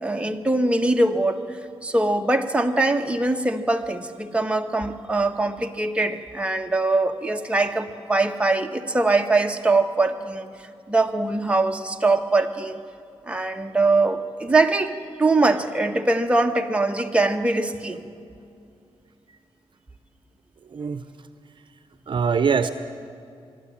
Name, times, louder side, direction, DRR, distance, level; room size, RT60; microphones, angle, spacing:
voice 1, 0.0-1.6 1.8-10.5 10.9-12.8 13.3-18.0, right 2 dB, 10° right, 4 dB, 1.4 m, -22 dB
voice 2, 20.7-21.0 22.1-22.7, right 6 dB, 55° right, 10 dB, 0.8 m, -22 dB
25.0 x 12.0 x 8.8 m, 2.4 s
cardioid pair, 80°, 10 cm